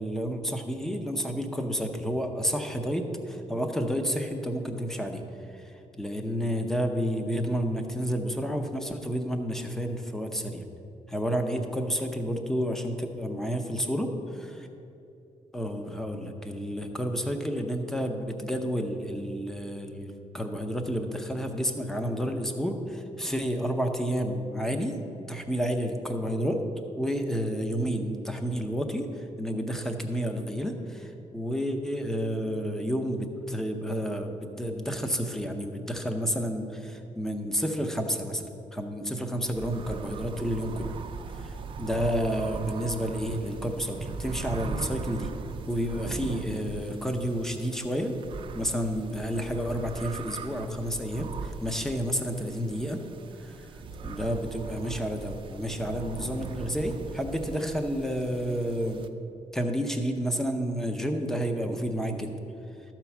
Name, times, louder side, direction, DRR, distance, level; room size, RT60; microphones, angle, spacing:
voice 1, 0.0-5.2 5.5-10.6 11.1-14.1 15.5-25.0 25.3-26.7 27.0-38.4 38.7-41.0 41.3-45.3 45.7-48.1 48.6-53.0 53.4-53.7 54.0-59.0 59.5-62.4, equal, 5° left, 5 dB, 0.6 m, -30 dB
sound 1, 39.5-59.1, right 5 dB, 40° right, 0.5 m, -39 dB
13.0 x 4.5 x 7.1 m, 2.7 s
cardioid pair, 180°, 13 cm